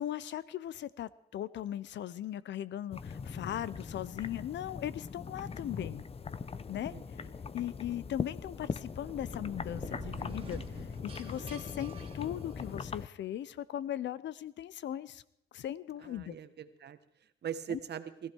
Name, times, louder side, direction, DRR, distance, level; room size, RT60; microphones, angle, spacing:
voice 1, 0.0-6.0 6.7-6.9 7.5-10.6 11.0-15.2 15.5-16.4 17.7-17.8, left 11 dB, 65° left, 19 dB, 0.7 m, -38 dB
sound 1, 2.9-13.1, left 5 dB, 30° left, 0.7 m, -41 dB
voice 2, 6.9-7.3 16.0-18.3, right 8 dB, 55° right, 11 dB, 1.4 m, -42 dB
sound 2, 9.0-13.0, right 4 dB, 30° right, 2.6 m, -48 dB
20.5 x 15.0 x 4.6 m, 0.75 s
cardioid pair, 90°, 20 cm